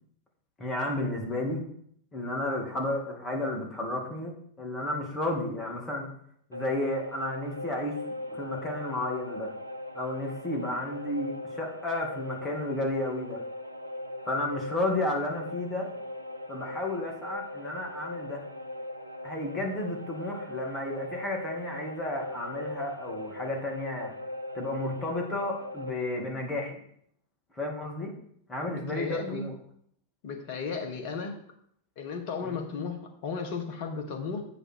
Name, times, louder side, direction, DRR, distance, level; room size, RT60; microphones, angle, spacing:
voice 1, 0.6-1.6 2.1-4.3 4.6-6.1 6.5-7.9 8.3-9.5 9.9-13.4 14.3-15.9 16.5-18.4 19.2-24.1 24.5-26.8 27.6-28.1 28.5-29.5 32.4-32.6, left 1 dB, 20° left, 0 dB, 2.5 m, -32 dB
sound 1, 6.5-25.9, left 1 dB, 85° right, 0.6 m, -39 dB
voice 2, 28.7-29.5 30.2-31.3 32.0-34.4, left 5 dB, 45° left, 3 dB, 1.6 m, -34 dB
8.0 x 6.0 x 4.7 m, 0.66 s
figure-of-eight pair, 90°, 0 cm